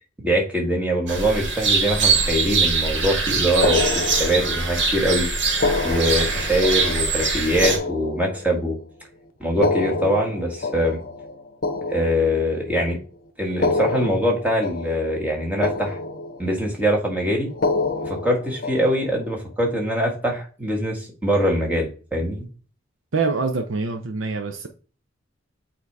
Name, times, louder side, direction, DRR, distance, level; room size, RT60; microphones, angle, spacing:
voice 1, 0.2-5.3 5.8-8.7 9.4-11.0 11.9-13.0 13.4-16.0 16.4-17.5 18.1-22.4, equal, 10° right, -1 dB, 1.7 m, -23 dB
sound 1, 1.1-7.8, right 4 dB, 65° right, 1.6 m, -23 dB
sound 2, 3.6-4.9 5.5-8.8 9.5-12.8 13.5-15.4 15.6-16.7 17.5-19.3, left 3 dB, 50° left, 0.8 m, -28 dB
voice 2, 23.1-24.7, right 4 dB, 85° right, 5 dB, 0.7 m, -25 dB
8.1 x 2.9 x 4.7 m, 0.38 s
head